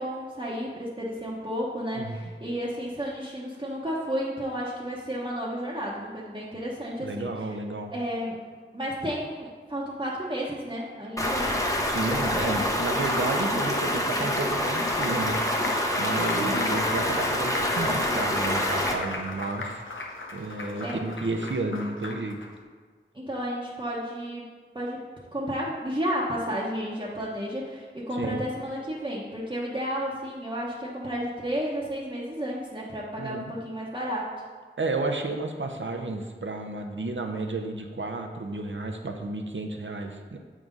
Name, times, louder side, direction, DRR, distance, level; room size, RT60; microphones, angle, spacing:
voice 1, 0.0-7.3 7.9-8.4 8.7-11.5 20.8-21.1 23.1-24.5 24.7-25.1 25.3-34.3, equal, 25° right, -7 dB, 1.0 m, -32 dB
voice 2, 1.9-2.3 7.0-7.9 11.9-19.8 20.3-22.4 28.1-28.4 33.2-33.5 34.8-40.4, right 2 dB, 75° right, 4 dB, 0.7 m, -32 dB
Stream, 11.2-18.9, left 1 dB, 15° left, 0.9 m, -26 dB
Applause, 14.1-22.5, left 2 dB, 80° left, 0.8 m, -37 dB
7.6 x 3.7 x 5.3 m, 1.5 s
wide cardioid pair, 45°, 20 cm